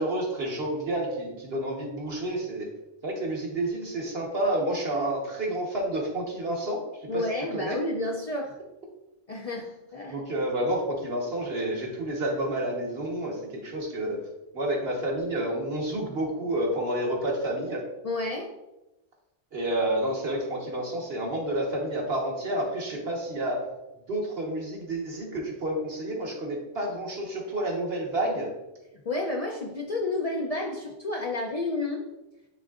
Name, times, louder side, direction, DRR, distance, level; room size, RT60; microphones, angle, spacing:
voice 1, 0.0-2.7 3.0-6.8 7.1-7.8 10.1-14.2 14.5-17.8 19.5-23.6 24.1-28.5, right 1 dB, 65° right, -1 dB, 1.5 m, -29 dB
voice 2, 7.1-8.6 9.3-10.2 18.0-18.5 29.1-32.0, left 2 dB, 45° left, 0 dB, 0.5 m, -30 dB
11.0 x 3.7 x 2.4 m, 0.98 s
omnidirectional pair, 1.1 m